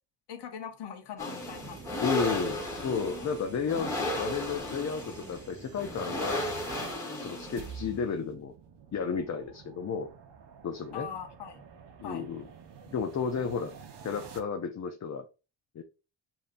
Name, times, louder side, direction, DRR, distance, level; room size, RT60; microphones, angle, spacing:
voice 1, 0.3-2.0 2.5-2.9 3.2-3.3 4.0-4.4 10.9-11.6 12.0-12.2, left 7 dB, 60° left, 0.9 m, -42 dB
sound 1, 1.2-8.0, left 1 dB, 5° left, 1.2 m, -35 dB
sound 2, 1.4-6.6, right 5 dB, 35° right, 0.6 m, -48 dB
voice 2, 2.0-6.5 7.2-8.5 8.9-10.1 10.6-11.1 12.0-12.4 12.9-13.7 14.0-15.3 15.7-15.8, left 6 dB, 40° left, 0.4 m, -33 dB
sound 3, 5.9-14.4, right 7 dB, 65° right, 0.8 m, -49 dB
7.1 x 2.6 x 2.5 m
wide cardioid pair, 140°, 45 cm